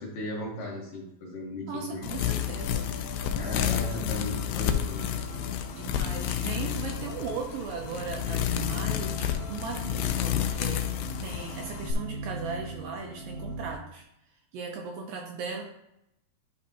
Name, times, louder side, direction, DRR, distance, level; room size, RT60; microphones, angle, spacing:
voice 1, 0.0-2.1 3.4-5.0, left 1 dB, 65° left, -2 dB, 2.7 m, -36 dB
voice 2, 1.7-2.9 3.2-4.1 5.7-10.9 11.2-14.1 14.5-15.6, right 5 dB, 75° right, 2 dB, 2.2 m, -38 dB
sound 1, 2.0-11.9, left 11 dB, 80° left, 2.2 m, -30 dB
sound 2, 2.1-13.7, right 2 dB, 30° right, 0.8 m, -41 dB
10.5 x 5.3 x 2.7 m, 0.82 s
omnidirectional pair, 4.6 m